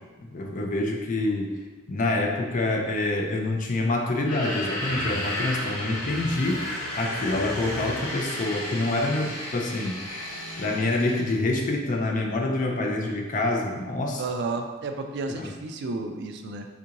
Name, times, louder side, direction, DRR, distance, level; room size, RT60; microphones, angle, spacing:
voice 1, 0.2-1.6 1.9-6.6 7.0-10.0 10.6-14.2 15.4-15.5, left 2 dB, 40° left, 1 dB, 0.4 m, -26 dB
sound 1, 4.1-11.4, left 1 dB, 85° left, 1.1 m, -33 dB
voice 2, 14.2-16.7, right 3 dB, 55° right, 5 dB, 0.3 m, -32 dB
3.6 x 2.4 x 2.9 m, 1.3 s
head